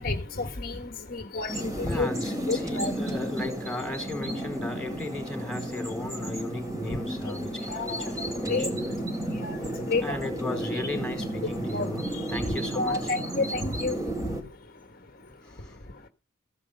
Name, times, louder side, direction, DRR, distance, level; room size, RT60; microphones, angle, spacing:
voice 1, 0.0-2.1 2.5-2.9 7.2-7.3 7.7-8.1 8.5-8.7 9.3-9.6 9.9-10.2 10.7-10.8 11.7-12.2 12.7-14.0, left 3 dB, 45° left, 1.4 m, -30 dB
sound 1, 1.5-14.4, right 1 dB, 15° right, 3.2 m, -33 dB
voice 2, 1.8-9.0 10.0-13.1 15.4-15.8, left 2 dB, 5° left, 4.3 m, -36 dB
16.0 x 10.0 x 5.4 m
head